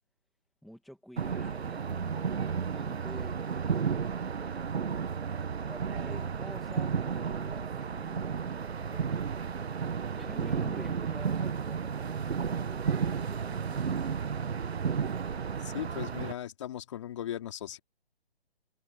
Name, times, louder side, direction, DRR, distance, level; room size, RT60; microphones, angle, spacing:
voice 1, 0.6-4.7 5.6-9.4 10.2-14.1, equal, ahead, 1.9 m, -49 dB
sound 1, 1.2-16.3, right 6 dB, 75° right, 1.2 m, -32 dB
voice 2, 15.6-17.8, left 11 dB, 30° left, 3.6 m, -38 dB
hypercardioid pair, 170°, 32 cm